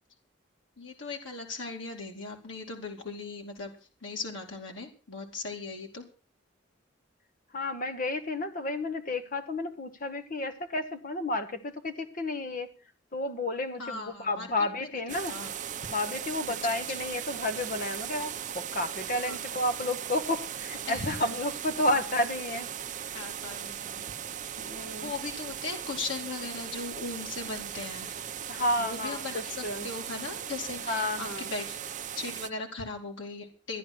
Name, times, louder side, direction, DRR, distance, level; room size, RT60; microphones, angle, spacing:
voice 1, 0.8-3.7 4.0-6.0 13.8-14.5 15.3-15.5 19.2-19.4 20.9-21.3 23.1-24.0 24.7-28.2 28.8-31.8 32.1-33.8, left 3 dB, 85° left, 1 dB, 2.7 m, -38 dB
voice 2, 7.5-12.7 13.1-15.4 15.9-22.7 24.6-25.1 28.5-29.9 30.9-31.5, left 1 dB, 45° left, 10 dB, 1.1 m, -31 dB
sound 1, 15.1-32.5, right 9 dB, 40° right, 0.6 m, -38 dB
13.5 x 11.0 x 6.1 m, 0.37 s
head